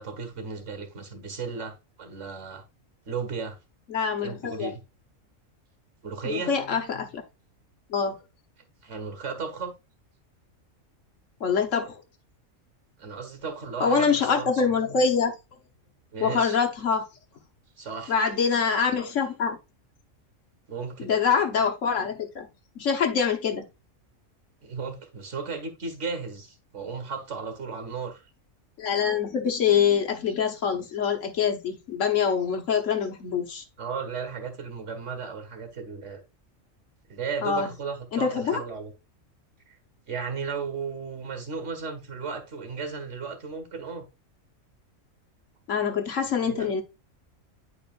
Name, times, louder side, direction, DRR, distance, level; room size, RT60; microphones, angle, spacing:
voice 1, 0.0-2.6 3.1-3.6 4.2-4.8 6.0-6.5 8.8-9.7 13.0-14.7 16.1-16.6 17.8-18.2 20.7-21.1 24.6-28.2 33.8-36.2 37.1-38.9 39.7-39.8 40.1-44.1 46.4-46.7, right 5 dB, 65° right, 2.1 m, -35 dB
voice 2, 3.9-4.7 6.2-7.2 7.9-8.2 11.4-12.0 13.8-15.4 16.2-17.1 18.1-19.6 21.0-22.5 22.8-23.6 28.8-33.6 37.4-37.7 38.1-38.6 45.7-46.8, left 6 dB, 70° left, 1.5 m, -25 dB
11.0 x 4.2 x 2.5 m
omnidirectional pair, 1.4 m